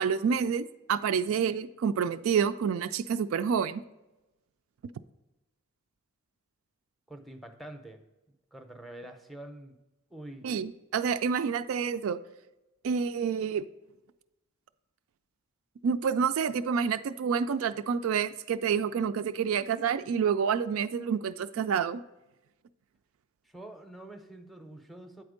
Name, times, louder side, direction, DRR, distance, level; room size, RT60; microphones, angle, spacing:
voice 1, 0.0-3.8 10.4-12.2 12.8-13.7 15.8-22.0, right 6 dB, 75° right, 11 dB, 0.3 m, -28 dB
voice 2, 7.1-9.8 10.1-10.5 23.4-25.2, right 1 dB, ahead, 6 dB, 0.6 m, -46 dB
8.8 x 4.3 x 5.0 m, 1.0 s
head